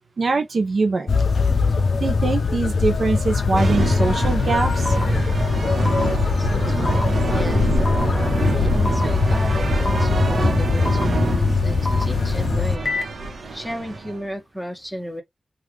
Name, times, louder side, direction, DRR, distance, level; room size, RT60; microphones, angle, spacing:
voice 1, 0.2-1.2 2.0-5.0, right 3 dB, 65° right, 0.6 m, -23 dB
Music - Festival - Distant, 1.1-12.8, left 4 dB, 65° left, 0.4 m, -21 dB
sound 1, 3.5-14.2, right 2 dB, 80° right, 1.0 m, -25 dB
sound 2, 4.9-5.0 5.9-6.0 6.9-7.0 7.9-8.0 8.9-9.0 9.9-10.0 10.9-11.0 11.9-12.0 12.9-13.0, left 2 dB, 45° left, 0.9 m, -27 dB
voice 2, 6.4-7.7 7.9-13.0 13.5-15.2, equal, ahead, 1.3 m, -34 dB
3.2 x 2.4 x 3.2 m
wide cardioid pair, 95°, 0 cm